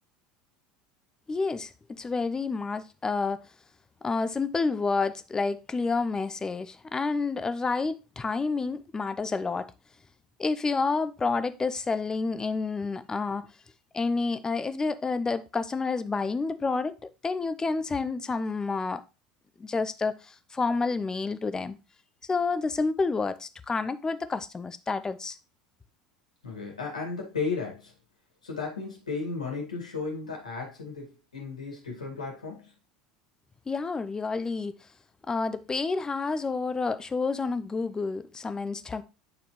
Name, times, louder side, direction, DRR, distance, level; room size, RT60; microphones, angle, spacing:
voice 1, 1.3-1.7 2.0-3.4 4.0-9.7 10.4-13.5 13.9-19.0 19.6-21.8 22.3-25.4 33.7-34.8 35.3-39.0, left 4 dB, 15° left, 0.6 m, -29 dB
voice 2, 26.4-27.9 28.4-32.7, left 4 dB, 75° left, 2.2 m, -34 dB
9.3 x 4.3 x 3.1 m
figure-of-eight pair, 75°, 4 cm